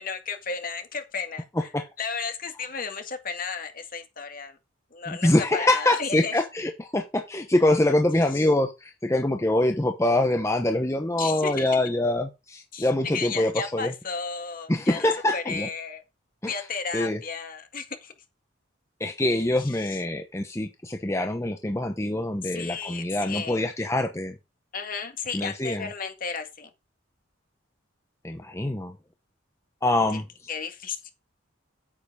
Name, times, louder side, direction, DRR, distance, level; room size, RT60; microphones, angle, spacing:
voice 1, 0.0-1.4 2.0-4.6 4.9-6.3 11.2-11.8 12.7-16.0 16.5-18.1 19.6-20.0 22.4-23.7 24.7-26.7 30.1-30.2 30.5-31.1, left 5 dB, 45° left, 1.9 m, -34 dB
voice 2, 1.6-1.9 5.1-13.9 14.7-15.7 16.4-16.6 16.9-17.2 19.0-24.3 25.3-25.9 28.2-28.9 29.8-30.3, left 1 dB, 15° left, 0.9 m, -24 dB
8.9 x 7.9 x 4.8 m
head